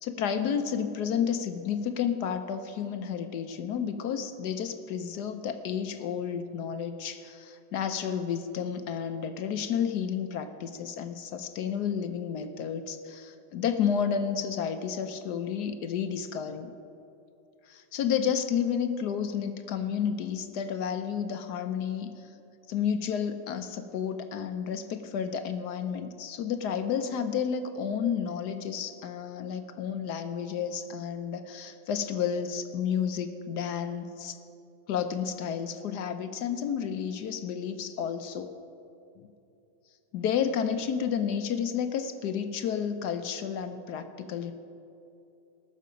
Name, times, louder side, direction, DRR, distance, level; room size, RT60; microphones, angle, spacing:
voice 1, 0.0-16.7 17.7-22.3 22.7-34.4 34.9-38.5 39.2-39.3 40.1-44.5, left 7 dB, 70° left, 8 dB, 1.1 m, -31 dB
19.0 x 6.6 x 5.1 m, 2.7 s
omnidirectional pair, 2.1 m